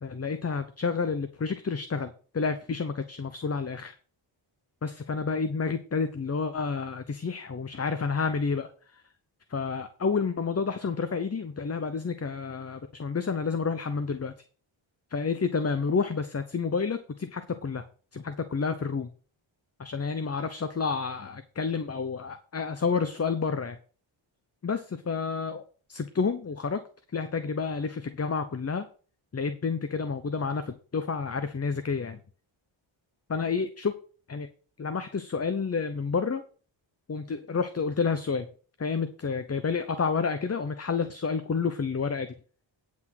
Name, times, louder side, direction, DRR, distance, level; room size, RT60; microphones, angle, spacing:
voice 1, 0.0-3.9 4.8-9.0 9.5-14.3 15.1-17.8 18.1-19.1 19.8-23.8 24.6-25.6 25.9-26.8 27.1-28.9 29.3-32.2 33.3-34.0 34.3-34.5 34.8-36.4 37.1-38.5 38.8-42.3, left 5 dB, 30° left, 11 dB, 0.8 m, -30 dB
9.6 x 6.1 x 6.0 m, 0.40 s
wide cardioid pair, 95°, 49 cm